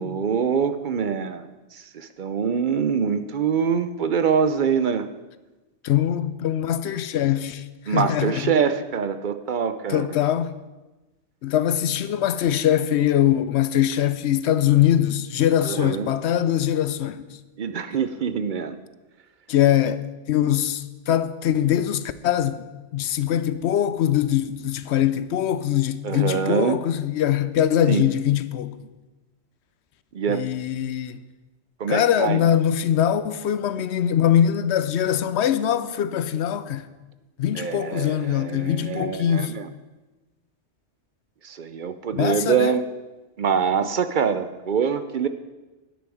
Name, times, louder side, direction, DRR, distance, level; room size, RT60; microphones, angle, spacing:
voice 1, 0.0-1.5 1.7-5.1 7.9-10.1 15.6-16.1 17.6-18.8 26.0-26.8 27.9-28.1 30.1-30.5 31.8-32.4 37.5-39.7 41.4-42.8 43.4-45.3, right 6 dB, 55° right, 0.6 m, -24 dB
voice 2, 5.8-8.5 9.9-10.5 11.4-17.4 19.5-22.6 22.9-28.9 30.3-31.2 31.9-36.9 37.4-39.6 42.2-42.7, left 10 dB, 70° left, 0.8 m, -22 dB
10.5 x 10.0 x 4.8 m
omnidirectional pair, 1.2 m